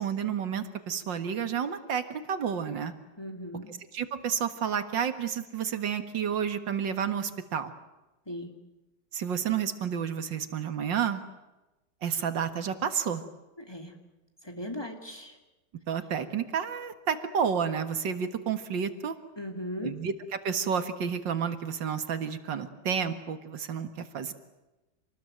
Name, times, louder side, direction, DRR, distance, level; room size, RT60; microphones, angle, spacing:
voice 1, 0.0-2.9 3.7-7.7 9.1-11.2 12.0-13.2 15.9-19.2 19.8-20.1 20.4-24.3, right 7 dB, 80° right, 10 dB, 2.3 m, -30 dB
voice 2, 3.2-3.7 8.3-8.5 13.6-14.0 14.4-15.4 19.4-20.0, left 1 dB, 15° left, 4 dB, 2.8 m, -38 dB
27.5 x 20.0 x 9.1 m, 1.0 s
omnidirectional pair, 2.0 m